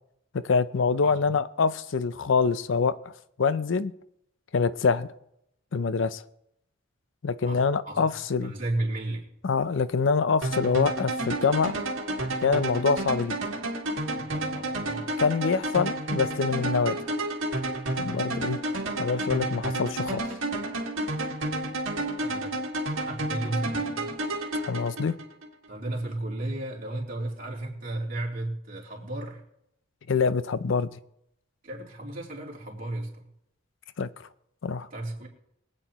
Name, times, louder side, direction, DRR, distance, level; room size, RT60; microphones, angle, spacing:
voice 1, 0.4-2.9 3.4-3.9 4.5-5.1 5.7-6.2 7.2-8.5 9.4-11.8 12.4-13.4 15.2-17.1 18.0-18.6 19.0-20.2 24.5-25.1 30.1-30.9 34.0-34.3 34.6-34.9, left 5 dB, 65° left, 15 dB, 0.5 m, -25 dB
voice 2, 7.4-8.0 8.4-9.3 14.1-15.1 22.1-22.6 22.9-24.1 25.7-29.4 31.6-33.3 34.9-35.3, right 1 dB, 45° right, -3 dB, 3.3 m, -34 dB
sound 1, 10.4-25.5, right 2 dB, 75° right, 1.9 m, -31 dB
23.5 x 8.9 x 3.0 m, 0.78 s
head